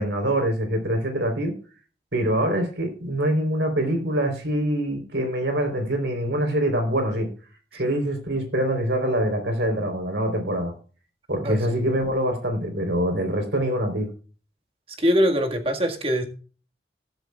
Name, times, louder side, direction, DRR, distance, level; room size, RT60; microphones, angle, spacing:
voice 1, 0.0-1.5 2.1-7.3 7.7-10.7 11.3-14.1, right 1 dB, 85° right, 4.0 m, -24 dB
voice 2, 11.4-11.8 15.0-16.3, equal, 35° right, 1.9 m, -23 dB
15.5 x 12.5 x 2.4 m
head